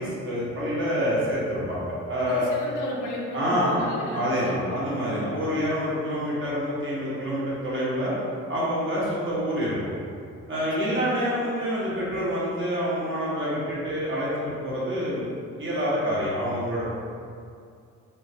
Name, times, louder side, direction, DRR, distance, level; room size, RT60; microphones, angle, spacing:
voice 1, 0.0-2.5 3.3-3.9 4.1-8.1 8.5-9.8 10.5-15.2 15.6-16.9, equal, 40° right, -8 dB, 1.2 m, -27 dB
voice 2, 2.2-5.4 10.8-11.2, left 1 dB, 85° left, -2 dB, 0.6 m, -35 dB
3.6 x 2.2 x 2.7 m, 2.3 s
cardioid pair, 90°, 30 cm